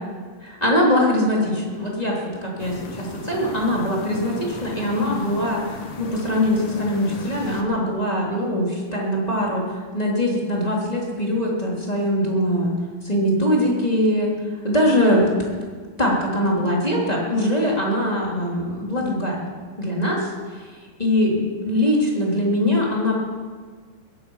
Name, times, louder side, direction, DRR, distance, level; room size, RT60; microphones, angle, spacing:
voice 1, 0.4-14.3 14.6-15.3 16.0-19.5 19.8-23.1, left 1 dB, 10° left, -3 dB, 2.8 m, -22 dB
sound 1, 2.6-7.6, left 4 dB, 60° left, 1.5 m, -36 dB
21.5 x 12.0 x 5.6 m, 1.6 s
omnidirectional pair, 4.2 m